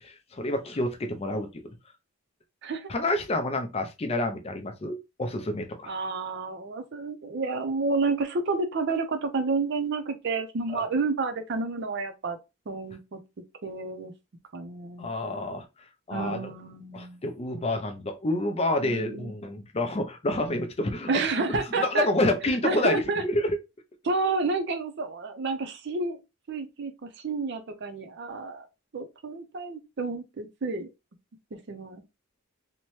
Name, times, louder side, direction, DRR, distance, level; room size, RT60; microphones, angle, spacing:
voice 1, 0.3-1.5 2.9-5.9 10.7-10.8 15.0-15.7 16.1-16.5 16.9-23.6, left 1 dB, 30° left, 0.4 m, -28 dB
voice 2, 5.9-12.4 12.7-13.2 13.6-14.1 14.5-15.1 16.1-17.2 18.8-19.3 21.1-22.1 22.6-23.2 24.0-26.2 26.5-28.7 28.9-30.9 31.7-32.0, right 3 dB, 55° right, 0.5 m, -30 dB
2.7 x 2.1 x 3.0 m
head